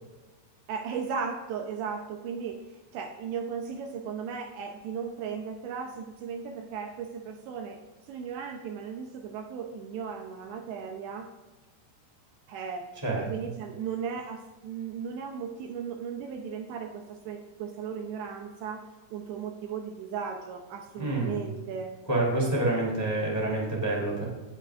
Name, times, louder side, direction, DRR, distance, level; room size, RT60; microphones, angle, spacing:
voice 1, 0.7-7.8 8.1-11.3 12.5-12.9 13.3-21.9, right 6 dB, 75° right, 3 dB, 2.8 m, -36 dB
voice 2, 21.0-21.4 22.1-24.3, right 2 dB, 10° left, -3 dB, 1.8 m, -27 dB
18.5 x 8.3 x 2.5 m, 1.2 s
omnidirectional pair, 5.5 m